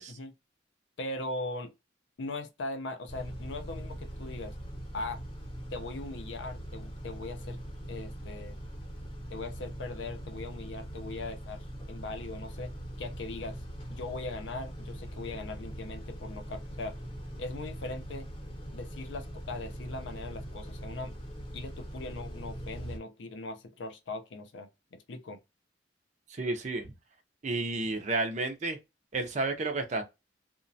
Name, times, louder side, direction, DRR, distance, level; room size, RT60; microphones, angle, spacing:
voice 1, 1.0-1.7 2.2-4.5 4.9-5.2 5.7-7.6 7.9-8.6 9.3-12.7 13.0-13.6 13.9-17.0 17.4-18.3 18.7-21.1 21.5-25.4, left 2 dB, 70° left, 0.5 m, -40 dB
Car / Idling / Accelerating revving vroom, 3.1-23.0, equal, 30° left, 0.8 m, -42 dB
voice 2, 26.3-26.9 27.4-28.8 29.1-30.0, right 2 dB, 40° right, 0.5 m, -31 dB
2.9 x 2.1 x 2.6 m
head